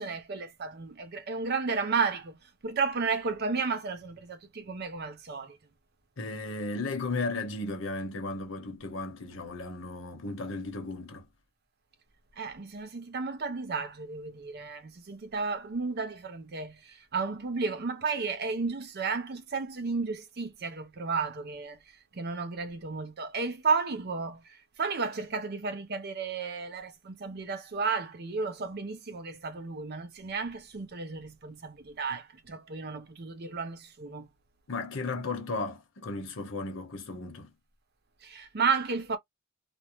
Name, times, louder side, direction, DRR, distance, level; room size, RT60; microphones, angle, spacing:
voice 1, 0.0-2.4 2.6-5.6 12.4-21.8 22.1-24.4 24.8-34.3 38.2-39.2, right 4 dB, 50° right, 0.6 m, -33 dB
voice 2, 6.2-11.3 34.7-37.5, left 3 dB, 70° left, 0.9 m, -35 dB
2.5 x 2.1 x 3.0 m
head